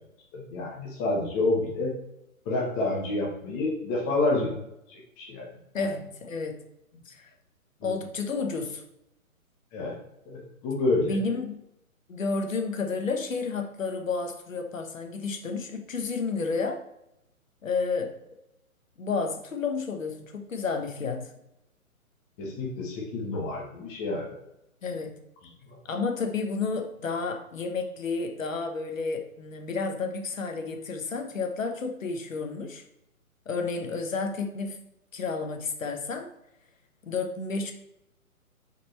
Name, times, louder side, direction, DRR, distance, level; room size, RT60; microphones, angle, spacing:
voice 1, 0.3-1.9 2.5-4.5 4.9-5.5 7.8-7.9 9.7-10.0 10.3-11.2 22.4-24.3, left 2 dB, 10° left, -2 dB, 0.7 m, -28 dB
voice 2, 5.7-6.6 7.1-7.3 7.8-8.8 11.0-11.6 12.1-16.8 17.6-18.1 19.0-21.3 24.8-25.1 25.8-32.8 33.5-34.8 35.1-36.3 37.0-37.7, left 4 dB, 65° left, 5 dB, 1.1 m, -31 dB
6.1 x 4.4 x 4.2 m, 0.82 s
figure-of-eight pair, 135°, 43 cm